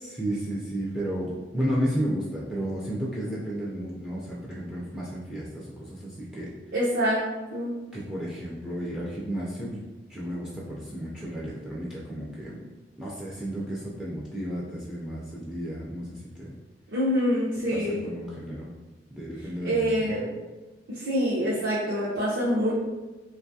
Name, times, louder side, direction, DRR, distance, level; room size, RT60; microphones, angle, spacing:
voice 1, 0.0-6.5 7.9-9.8 10.1-12.6 13.0-16.5 17.7-18.7 19.1-20.2, equal, 5° right, -7 dB, 0.3 m, -33 dB
voice 2, 6.7-7.2 7.5-7.7 16.9-18.0 19.6-20.3 20.9-22.7, equal, 70° right, -8 dB, 0.6 m, -25 dB
2.6 x 2.3 x 2.6 m, 1.2 s
head